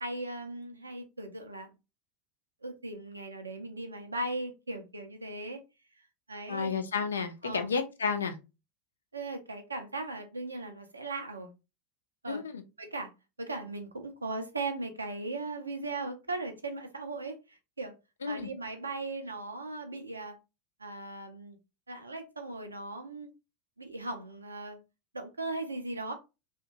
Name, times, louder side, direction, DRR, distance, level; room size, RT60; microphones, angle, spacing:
voice 1, 0.0-1.7 2.6-5.6 6.3-6.7 7.4-7.7 9.1-11.5 12.2-12.4 12.8-13.1 13.4-17.9 18.3-20.4 20.8-21.6 21.9-23.3 23.8-24.8 25.1-26.1, right 2 dB, 80° right, 0.5 m, -38 dB
voice 2, 6.5-8.4 12.3-12.6 18.2-18.5, left 5 dB, 75° left, 0.4 m, -31 dB
2.8 x 2.1 x 2.5 m
figure-of-eight pair, 80°, 0 cm